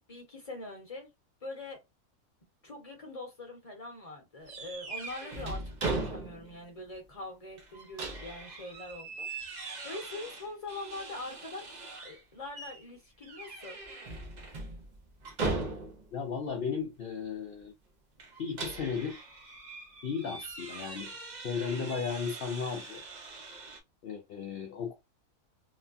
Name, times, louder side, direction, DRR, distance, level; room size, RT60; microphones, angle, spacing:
voice 1, 0.1-1.1 1.4-1.8 2.6-13.8, left 2 dB, 30° left, 0.8 m, -43 dB
sound 1, 4.5-6.6 6.9-7.0 7.6-12.2 12.5-12.8 13.2-16.2 18.2-23.8, right 3 dB, 60° right, 0.4 m, -40 dB
voice 2, 16.1-17.7 18.4-19.3 20.0-21.1 21.4-23.0 24.0-24.9, left 6 dB, 70° left, 0.5 m, -35 dB
3.0 x 2.2 x 2.5 m
omnidirectional pair, 1.5 m